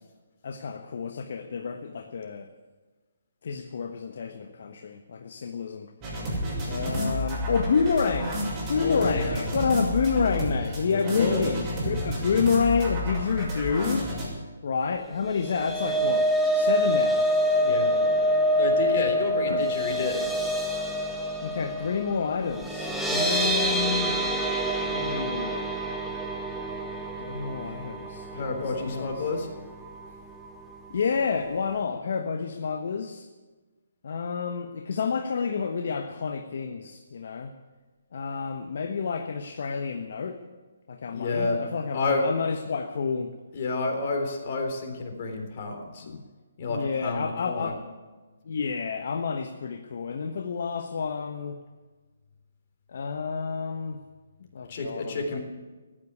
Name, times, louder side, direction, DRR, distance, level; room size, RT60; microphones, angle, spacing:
voice 1, 0.4-2.5 3.4-5.9 6.7-8.3 8.7-14.1 14.6-17.3 19.5-19.7 21.4-24.2 24.8-25.7 27.2-29.1 30.9-33.3 34.0-37.5 38.1-40.4 40.9-43.3 46.0-46.3 46.7-47.8 48.4-51.6 52.9-54.0 54.5-55.4, left 5 dB, 60° left, 6 dB, 1.1 m, -29 dB
sound 1, 6.0-14.3, equal, 25° right, 6.3 m, -30 dB
voice 2, 8.8-9.4 11.1-11.5 17.6-20.5 28.3-29.5 41.1-41.6 41.9-42.3 43.5-46.1 46.6-47.7 54.7-55.4, left 3 dB, 45° left, 3 dB, 3.8 m, -30 dB
sound 2, 15.2-29.5 29.8-30.1 30.4-30.5, equal, ahead, 1.6 m, -26 dB
15.0 x 10.0 x 9.7 m, 1.3 s
hypercardioid pair, 150°, 0 cm